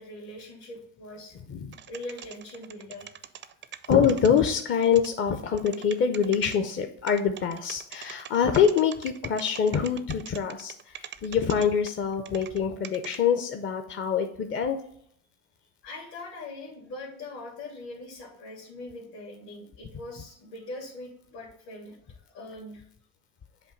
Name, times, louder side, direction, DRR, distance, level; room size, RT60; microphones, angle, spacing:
voice 1, 0.0-1.3 1.9-3.1 15.8-22.8, left 2 dB, 70° left, -5 dB, 2.1 m, -42 dB
sound 1, 1.7-5.1 5.6-6.6 7.1-12.6 12.8-13.2, right 10 dB, 30° right, 0.4 m, -42 dB
voice 2, 3.9-14.8, left 7 dB, 30° left, 6 dB, 0.5 m, -25 dB
7.4 x 2.6 x 5.1 m, 0.66 s
hypercardioid pair, 80°, 41 cm